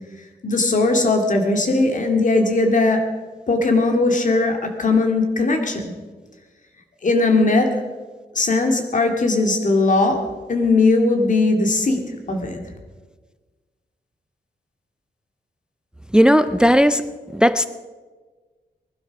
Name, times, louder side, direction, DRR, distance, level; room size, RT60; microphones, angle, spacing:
voice 1, 0.4-3.0 3.5-5.9 7.0-7.7 8.4-10.2 10.5-12.0 12.3-12.6, left 3 dB, 50° left, 4 dB, 2.3 m, -18 dB
voice 2, 16.1-17.0 17.3-17.7, equal, 5° right, 13 dB, 0.4 m, -15 dB
20.0 x 12.0 x 5.9 m, 1.4 s
wide cardioid pair, 165°, 17 cm